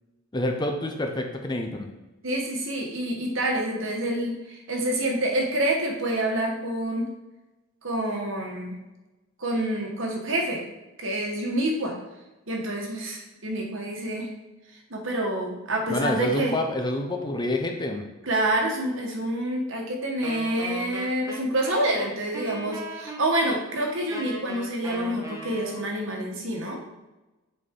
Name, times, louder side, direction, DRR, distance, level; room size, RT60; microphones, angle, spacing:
voice 1, 0.3-1.9 15.9-18.0, left 1 dB, 20° left, 3 dB, 0.6 m, -27 dB
voice 2, 2.2-7.1 7.8-8.8 9.4-10.6 11.0-12.0 12.5-14.3 14.9-16.6 18.2-26.8, right 1 dB, 60° right, 0 dB, 1.4 m, -27 dB
Wind instrument woodwind instrument, 20.2-26.0, right 1 dB, 15° right, 0.9 m, -38 dB
8.0 x 4.2 x 3.7 m, 1.1 s
head